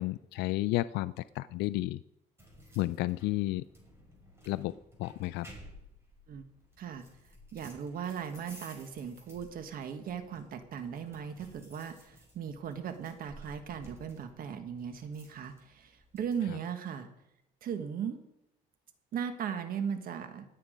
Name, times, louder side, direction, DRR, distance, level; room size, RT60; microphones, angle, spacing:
voice 1, 0.0-2.0 2.8-3.6 4.5-5.5, left 18 dB, 85° left, 16 dB, 0.4 m, -32 dB
sound 1, 2.4-16.4, equal, 15° right, 6.2 m, -55 dB
voice 2, 7.5-17.1 17.6-18.2 19.1-20.4, right 7 dB, 60° right, 8 dB, 1.5 m, -38 dB
19.5 x 8.5 x 5.1 m, 0.85 s
cardioid pair, 110°, 17 cm